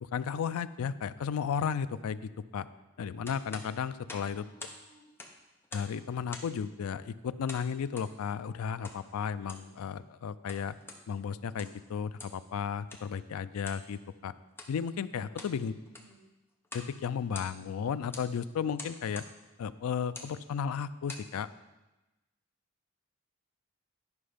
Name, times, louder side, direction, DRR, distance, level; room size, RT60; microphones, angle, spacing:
voice 1, 0.0-2.7 3.0-4.5 5.7-10.7 11.1-14.3 14.7-15.7 16.7-19.2 19.6-21.5, left 7 dB, 75° left, 14 dB, 0.3 m, -34 dB
sound 1, 3.2-4.8 5.1-6.0 6.3-6.6 7.5-8.1 8.8-9.0 9.4-9.7 10.3-11.0 11.4-11.8 12.2-12.4 12.9-13.1 13.6-13.9 14.5-14.7 15.2-15.6 15.9-16.2 16.6-16.9 17.2-17.7 18.1-18.3 18.8-19.3 20.0-20.3 20.9-21.3, left 2 dB, 10° left, 0.7 m, -46 dB
voice 2, 4.1-5.0 15.3-16.2, left 1 dB, 55° left, -3 dB, 2.2 m, -61 dB
9.7 x 5.2 x 5.0 m, 1.1 s
head